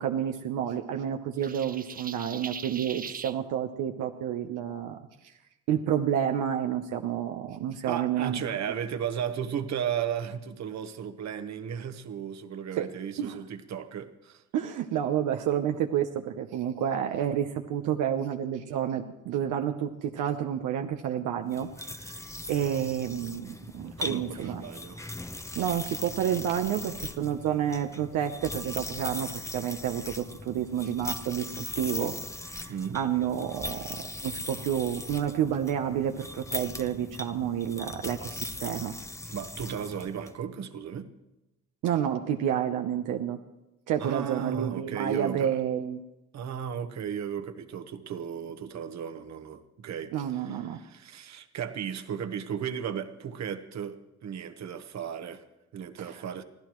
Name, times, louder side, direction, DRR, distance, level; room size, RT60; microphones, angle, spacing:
voice 1, 0.0-5.0 5.2-5.3 5.7-8.4 12.8-12.9 13.2-13.4 14.5-24.6 25.6-29.3 29.5-32.2 32.4-33.8 34.2-38.9 41.8-43.4 43.9-46.0 50.1-50.8 56.0-56.2, right 9 dB, 85° right, 5 dB, 0.9 m, -30 dB
sound 1, 1.4-3.4, right 6 dB, 30° right, 0.6 m, -40 dB
voice 2, 7.9-14.4 24.0-25.0 32.7-33.0 39.3-41.1 44.0-45.6 46.3-54.0 54.2-55.4 55.7-56.4, right 8 dB, 65° right, 10 dB, 1.2 m, -35 dB
sound 2, 21.5-40.3, left 2 dB, 10° left, 0.8 m, -39 dB
25.0 x 15.0 x 3.1 m, 0.95 s
cardioid pair, 90°, 30 cm